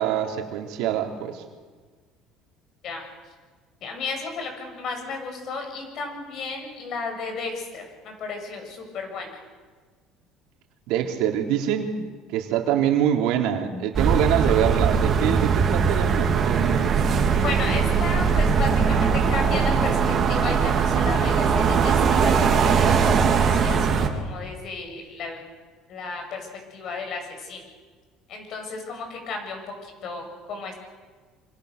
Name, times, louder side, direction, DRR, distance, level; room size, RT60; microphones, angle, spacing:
voice 1, 0.0-1.4 10.9-12.0 12.3-17.0, right 10 dB, 75° right, 3 dB, 3.5 m, -25 dB
voice 2, 3.8-9.4 17.3-25.4 25.9-27.6 28.3-30.7, left 4 dB, 50° left, 4 dB, 7.6 m, -33 dB
sound 1, 13.9-24.1, right 6 dB, 35° right, 3.1 m, -20 dB
27.0 x 26.0 x 6.8 m, 1.5 s
cardioid pair, 135°, 0 cm